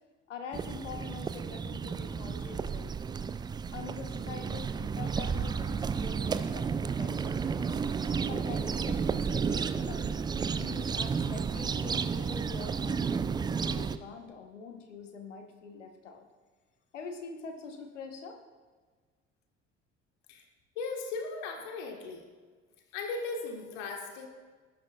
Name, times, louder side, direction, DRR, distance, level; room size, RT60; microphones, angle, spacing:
voice 1, 0.3-2.9 3.7-6.7 7.0-7.6 8.3-10.2 10.5-13.3 13.6-16.3 16.9-18.4, left 5 dB, 75° left, 6 dB, 1.2 m, -45 dB
sound 1, 0.5-14.0, right 6 dB, 15° right, 0.3 m, -32 dB
voice 2, 20.8-22.3 22.9-24.3, left 3 dB, 60° left, 3 dB, 1.6 m, -37 dB
18.5 x 9.6 x 2.4 m, 1.4 s
figure-of-eight pair, 55°, 36 cm